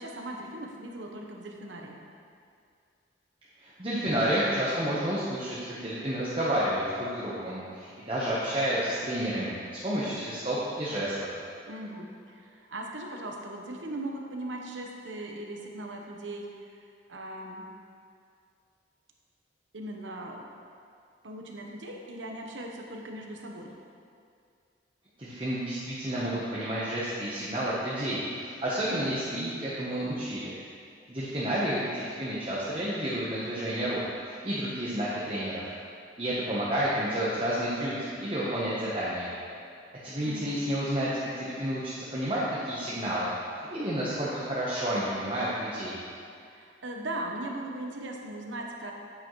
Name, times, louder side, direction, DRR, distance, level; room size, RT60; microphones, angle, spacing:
voice 1, 0.0-2.0 11.7-17.6 19.7-20.5 21.2-23.7 40.2-40.6 46.5-48.9, right 1 dB, 85° right, 1 dB, 1.1 m, -39 dB
voice 2, 3.6-9.5 9.8-11.1 25.2-30.5 31.1-35.6 36.2-39.3 40.0-43.3 43.7-45.9, right 1 dB, 30° right, -8 dB, 1.0 m, -30 dB
9.0 x 8.8 x 3.1 m, 2.3 s
head